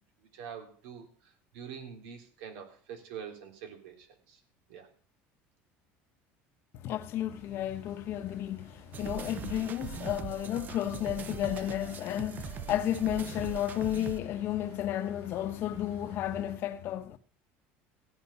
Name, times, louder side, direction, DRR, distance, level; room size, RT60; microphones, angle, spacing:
voice 1, 0.2-4.4 4.7-4.9 11.5-11.7, right 7 dB, 85° right, 3.3 m, -45 dB
voice 2, 6.8-17.2, left 12 dB, 45° left, 1.1 m, -32 dB
sound 1, 7.3-16.6, right 3 dB, 60° right, 3.3 m, -54 dB
sound 2, 8.9-14.2, right 9 dB, 35° right, 0.7 m, -41 dB
16.0 x 9.3 x 5.6 m
cardioid pair, 150°, 5 cm